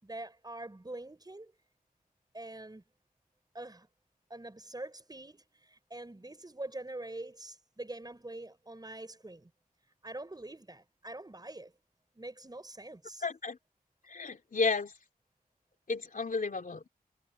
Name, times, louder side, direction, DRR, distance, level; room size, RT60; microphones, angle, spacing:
voice 1, 0.0-1.5 2.3-2.8 3.5-3.9 4.3-9.5 10.0-11.7 12.1-13.2, right 2 dB, 25° right, 5.8 m, -44 dB
voice 2, 13.2-13.6 14.1-14.9 15.9-16.9, left 4 dB, 60° left, 3.1 m, -32 dB
wide cardioid pair, 90°, 16 cm